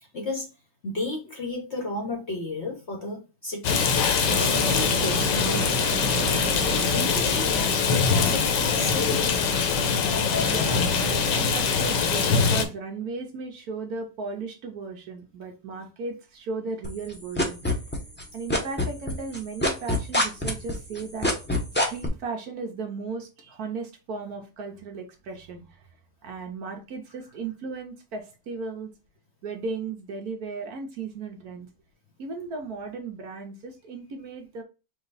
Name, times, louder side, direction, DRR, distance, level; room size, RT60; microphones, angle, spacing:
voice 1, 0.1-0.5 0.8-3.9 4.2-5.9 6.9-9.1 9.4-9.6 10.2-10.5, left 2 dB, 50° left, 1 dB, 0.9 m, -34 dB
Rain, 3.6-12.7, left 5 dB, 80° left, 1.4 m, -23 dB
sound 1, 4.3-12.5, right 5 dB, 85° right, 1.3 m, -36 dB
voice 2, 9.0-9.3 10.2-17.6 18.3-21.3 21.9-25.9 26.2-28.9 29.4-31.7 32.2-34.6, right 4 dB, 65° right, 4 dB, 1.2 m, -36 dB
sound 2, 16.8-18.2 18.5-22.1, left 1 dB, 15° left, 0.4 m, -24 dB
4.9 x 2.4 x 3.9 m, 0.30 s
omnidirectional pair, 1.9 m